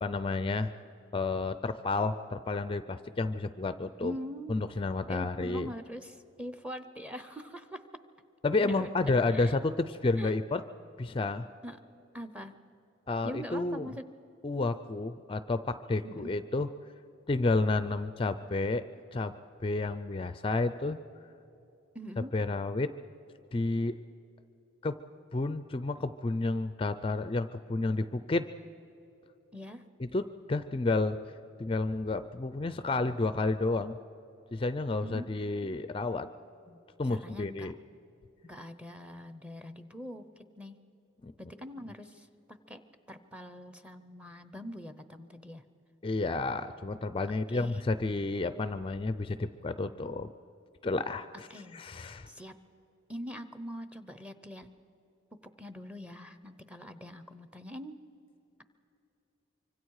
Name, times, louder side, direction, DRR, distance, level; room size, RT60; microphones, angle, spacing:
voice 1, 0.0-0.7 1.1-4.1 4.5-5.7 8.4-10.6 11.0-11.5 13.1-13.9 14.4-16.7 17.3-18.8 19.1-19.3 19.6-21.0 22.3-22.9 23.5-23.9 24.8-24.9 25.3-28.5 30.0-30.2 30.5-31.2 31.6-34.0 34.5-36.3 37.0-37.7 41.2-41.3 46.0-50.3 50.8-51.5 51.7-52.3, left 3 dB, 25° left, 12 dB, 0.4 m, -30 dB
voice 2, 4.0-4.6 5.1-7.8 8.6-9.6 10.2-10.3 11.6-11.8 12.1-12.5 13.2-14.1 16.0-16.3 21.9-22.4 29.5-29.8 35.0-35.3 35.6-35.8 36.7-36.8 37.1-37.7 38.4-40.7 41.4-42.8 43.1-45.6 47.5-47.8 51.5-51.8 52.3-52.5 53.1-54.7 55.6-58.0, equal, 5° right, 11 dB, 0.8 m, -43 dB
25.0 x 24.5 x 4.8 m, 2.9 s
head